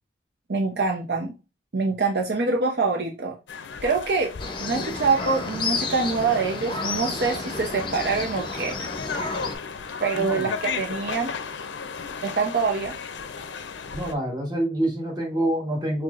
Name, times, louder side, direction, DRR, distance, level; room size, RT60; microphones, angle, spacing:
voice 1, 0.5-1.3 1.7-3.3 3.8-4.3 4.6-8.7 9.1-9.3 10.0-11.3 12.2-13.0, right 4 dB, 65° right, 0.7 m, -25 dB
sound 1, 3.5-14.1, left 5 dB, 80° left, 0.5 m, -35 dB
sound 2, 4.4-9.6, left 3 dB, 25° left, 0.6 m, -31 dB
voice 2, 10.1-10.5 13.9-16.0, right 1 dB, 25° right, 1.2 m, -26 dB
5.7 x 2.8 x 2.4 m
head